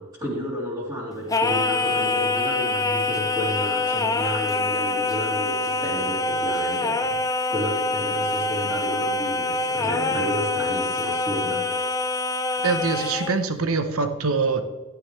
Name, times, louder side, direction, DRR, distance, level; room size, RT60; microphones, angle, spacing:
voice 1, 0.0-7.2 7.5-11.8, equal, 20° right, -7 dB, 3.3 m, -31 dB
Singing, 1.3-13.4, left 3 dB, 15° left, 0.6 m, -25 dB
voice 2, 12.6-14.6, right 4 dB, 85° right, 9 dB, 1.0 m, -24 dB
11.5 x 10.0 x 3.3 m, 1.3 s
head